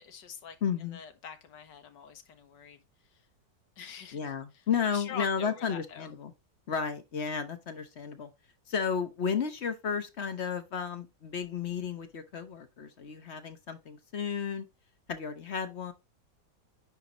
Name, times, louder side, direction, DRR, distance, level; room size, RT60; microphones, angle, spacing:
voice 1, 0.0-0.6 0.9-2.8 3.1-3.2 3.8-4.3 4.9-6.1, left 7 dB, 75° left, 1.8 m, -44 dB
voice 2, 0.6-1.0 4.1-6.3 6.7-8.3 8.7-14.6 15.1-15.9, left 6 dB, 45° left, 1.1 m, -33 dB
9.8 x 3.6 x 2.9 m
omnidirectional pair, 1.9 m